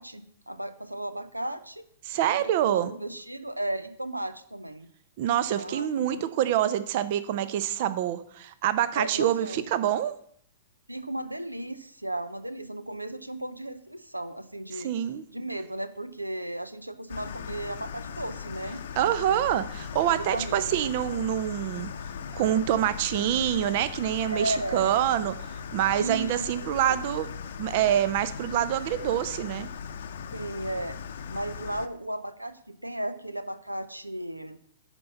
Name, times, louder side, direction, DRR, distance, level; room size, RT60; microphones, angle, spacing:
voice 1, 0.0-1.8 2.3-4.9 5.6-6.3 9.0-9.7 10.9-14.9 15.3-18.8 20.2-20.9 24.3-25.0 26.0-26.5 26.9-27.0 30.3-31.0 31.3-34.6, right 1 dB, 90° right, 13 dB, 0.6 m, -35 dB
voice 2, 2.0-2.9 5.2-10.1 14.7-15.2 19.0-21.9 22.3-27.3 27.6-29.7, right 11 dB, 45° right, 14 dB, 0.6 m, -26 dB
sound 1, 17.1-31.9, left 7 dB, 55° left, 0.7 m, -39 dB
10.5 x 4.5 x 6.9 m, 0.64 s
figure-of-eight pair, 110°, 0 cm